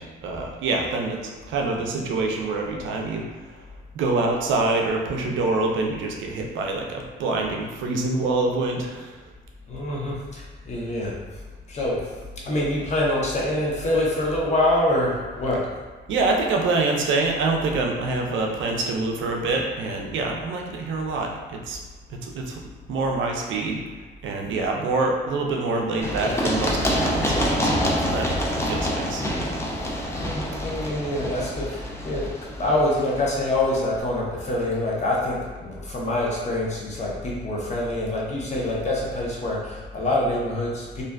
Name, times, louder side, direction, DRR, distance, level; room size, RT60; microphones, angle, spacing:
voice 1, 0.0-3.2 3.9-9.1 16.1-21.8 22.1-22.6 22.9-23.8 24.2-29.3, right 3 dB, 75° right, 1 dB, 0.4 m, -26 dB
voice 2, 9.7-11.1 11.7-12.1 12.4-15.7 30.2-32.3 32.6-41.0, left 1 dB, 35° left, -4 dB, 0.7 m, -25 dB
Run, 26.0-33.7, equal, 15° left, 0.3 m, -26 dB
2.4 x 2.3 x 2.2 m, 1.3 s
cardioid pair, 90°, 20 cm